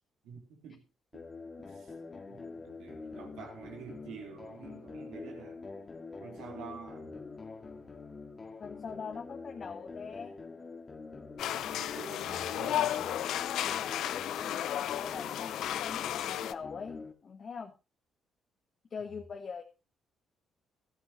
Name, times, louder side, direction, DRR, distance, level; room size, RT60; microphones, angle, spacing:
voice 1, 0.2-0.8 1.1-1.3 1.6-1.9 2.3-5.6 6.2-7.2 11.7-13.1, right 6 dB, 90° right, 3.2 m, -48 dB
sound 1, 1.1-17.1, left 4 dB, 35° left, 2.1 m, -46 dB
voice 2, 8.6-10.3 13.6-17.7 18.9-19.6, left 6 dB, 50° left, 1.4 m, -43 dB
sound 2, 11.4-16.5, left 12 dB, 80° left, 0.6 m, -33 dB
15.5 x 11.5 x 3.1 m
cardioid pair, 90°, 0 cm